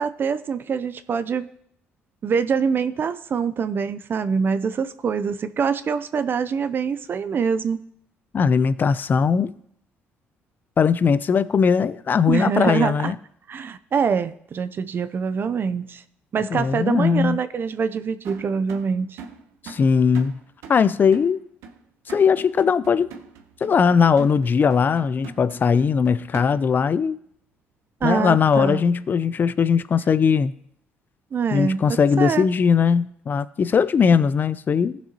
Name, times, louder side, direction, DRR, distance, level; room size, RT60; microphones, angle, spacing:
voice 1, 0.0-1.5 2.2-7.8 12.3-13.1 13.5-16.0 16.3-19.2 28.0-28.8 31.3-32.5, right 6 dB, 45° right, 0.5 m, -24 dB
voice 2, 8.3-9.5 10.8-13.1 16.5-17.4 19.6-20.4 20.7-21.4 22.1-23.1 23.6-27.2 28.0-30.5 31.5-35.0, left 6 dB, 40° left, 0.5 m, -19 dB
sound 1, 18.2-26.8, right 5 dB, 80° right, 0.9 m, -43 dB
15.5 x 6.1 x 2.9 m
supercardioid pair, 75°, 5 cm